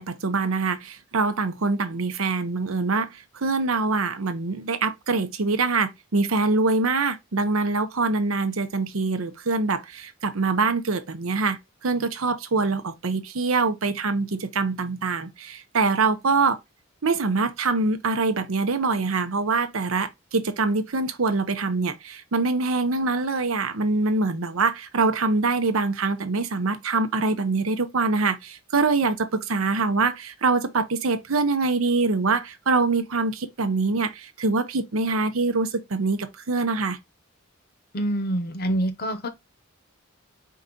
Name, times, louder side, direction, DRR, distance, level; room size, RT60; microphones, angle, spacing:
voice 1, 0.0-3.1 3.4-11.6 11.8-16.6 17.0-37.0, right 3 dB, 80° right, 0.8 m, -24 dB
voice 2, 37.9-39.3, right 1 dB, 50° left, 0.8 m, -26 dB
4.7 x 2.8 x 3.7 m
head